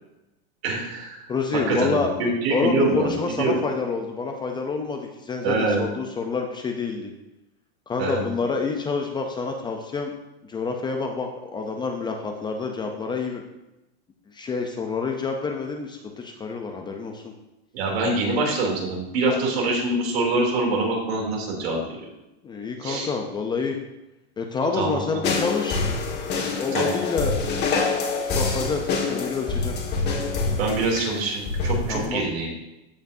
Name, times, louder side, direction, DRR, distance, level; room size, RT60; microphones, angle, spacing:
voice 1, 0.6-1.2 1.7-3.6 5.4-5.9 8.0-8.3 17.7-22.1 22.8-23.1 24.8-25.2 26.7-26.9 30.6-32.5, right 2 dB, 65° right, -1 dB, 2.9 m, -25 dB
voice 2, 1.3-2.1 2.5-7.1 7.9-10.1 10.4-13.4 14.3-17.3 22.4-23.8 24.4-25.8 26.6-27.4 28.3-29.7 31.9-32.2, left 4 dB, 15° left, 3 dB, 0.5 m, -28 dB
sound 1, 25.2-32.1, left 3 dB, 30° left, 1.8 m, -26 dB
15.0 x 5.1 x 2.7 m, 0.96 s
supercardioid pair, 145°, 33 cm